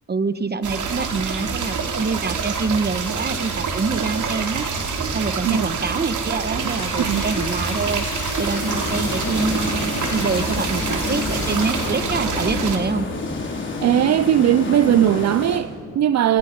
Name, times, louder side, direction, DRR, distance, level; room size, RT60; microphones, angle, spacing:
voice 1, 0.1-4.7 5.1-8.1 8.4-13.1, right 4 dB, 35° right, 1.2 m, -25 dB
sound 1, 0.6-12.8, right 5 dB, 80° right, 3.2 m, -26 dB
sound 2, 6.8-11.9, left 9 dB, 85° left, 1.1 m, -34 dB
sound 3, 8.5-15.6, left 3 dB, 40° left, 4.0 m, -29 dB
voice 2, 13.8-16.4, right 11 dB, 60° right, 0.5 m, -18 dB
28.5 x 28.0 x 5.3 m
cardioid pair, 100°, 30 cm